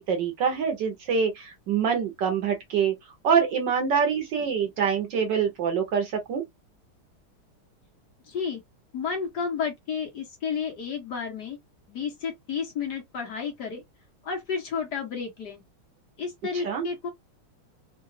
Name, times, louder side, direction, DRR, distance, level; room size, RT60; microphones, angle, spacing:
voice 1, 0.0-2.9 3.2-6.4 16.6-16.8, right 6 dB, 65° right, 1.3 m, -25 dB
voice 2, 8.3-8.6 8.9-11.6 11.9-13.8 14.2-15.6 16.2-17.1, left 6 dB, 55° left, 1.4 m, -31 dB
3.8 x 2.3 x 2.6 m
omnidirectional pair, 2.4 m